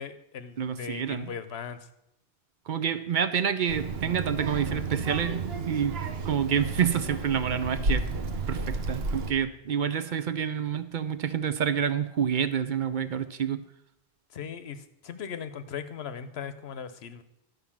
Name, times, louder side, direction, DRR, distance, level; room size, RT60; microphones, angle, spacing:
voice 1, 0.0-1.9 14.3-17.2, left 7 dB, 90° left, 12 dB, 1.0 m, -38 dB
voice 2, 0.6-1.3 2.7-5.9 6.2-8.0 8.5-13.6, right 8 dB, 55° right, 12 dB, 0.7 m, -28 dB
Child speech kid speaking, 3.7-9.3, right 3 dB, 80° right, 1.1 m, -32 dB
11.0 x 5.3 x 7.1 m, 0.82 s
omnidirectional pair, 1.0 m